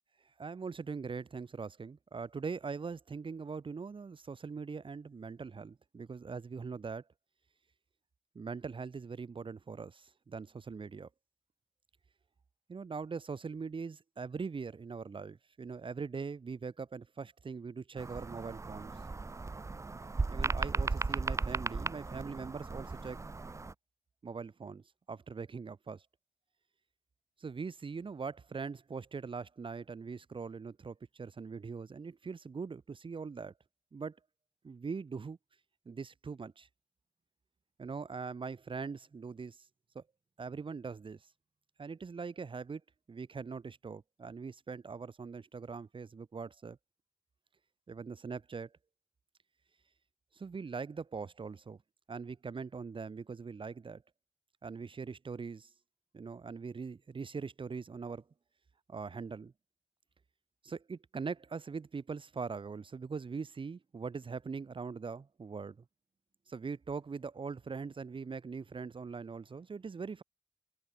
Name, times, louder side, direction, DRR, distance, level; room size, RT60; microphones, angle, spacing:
voice 1, 0.4-7.0 8.3-11.1 12.7-18.9 20.3-23.2 24.2-26.0 27.4-33.5 33.9-34.2 34.6-35.4 35.9-36.7 37.8-39.7 39.9-40.0 40.4-41.3 41.8-42.8 43.1-46.8 47.9-48.7 50.3-51.8 52.1-54.0 54.6-55.7 56.1-58.2 58.9-59.5 60.6-65.8 66.5-70.2, right 5 dB, 70° right, 2.7 m, -42 dB
sound 1, 18.0-23.7, right 3 dB, 35° right, 0.7 m, -36 dB
open air
wide cardioid pair, 90°, 9 cm